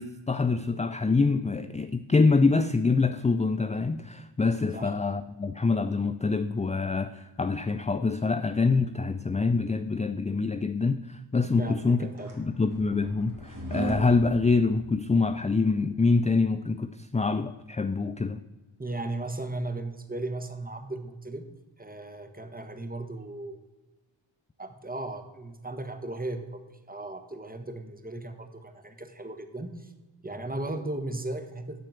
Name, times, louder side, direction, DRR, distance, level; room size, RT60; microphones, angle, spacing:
voice 1, 0.0-12.0 12.4-18.4, left 4 dB, 15° left, 11 dB, 0.3 m, -25 dB
voice 2, 11.6-12.3 18.8-21.5 21.8-23.6 24.6-29.9 30.2-31.8, right 2 dB, 20° right, 8 dB, 1.3 m, -36 dB
sound 1, 11.9-15.4, right 3 dB, 45° right, 2.3 m, -38 dB
12.0 x 4.4 x 7.7 m, 1.2 s
wide cardioid pair, 65°, 46 cm